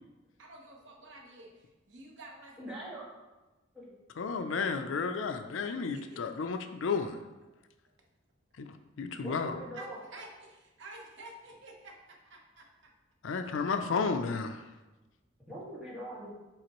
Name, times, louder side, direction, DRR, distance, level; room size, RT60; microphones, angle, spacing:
voice 1, 0.4-2.8 5.9-6.4 9.7-12.7, right 2 dB, 65° right, 1 dB, 1.0 m, -50 dB
voice 2, 2.6-3.1 3.7-3.9 9.2-10.0 15.5-16.3, right 1 dB, 5° right, -9 dB, 1.9 m, -42 dB
voice 3, 4.2-7.2 8.6-9.6 13.2-14.6, left 5 dB, 75° left, 7 dB, 0.5 m, -32 dB
7.7 x 4.3 x 3.0 m, 1.1 s
head